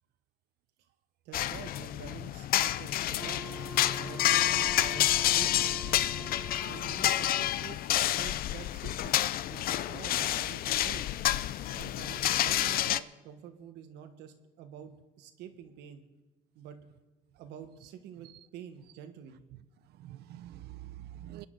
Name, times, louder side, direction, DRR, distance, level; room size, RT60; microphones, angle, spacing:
voice 1, 1.2-3.4 4.0-5.8 6.6-9.2 9.5-11.1 11.6-16.0 16.5-16.8 17.4-19.4, right 9 dB, 90° right, 1.5 m, -48 dB
sound 1, 1.3-13.0, left 13 dB, 60° left, 0.5 m, -29 dB
Wind instrument woodwind instrument, 3.2-7.3, right 3 dB, 10° right, 0.6 m, -45 dB
voice 2, 19.5-21.5, right 13 dB, 75° right, 0.7 m, -47 dB
23.0 x 10.5 x 3.9 m
cardioid pair, 110°, 17 cm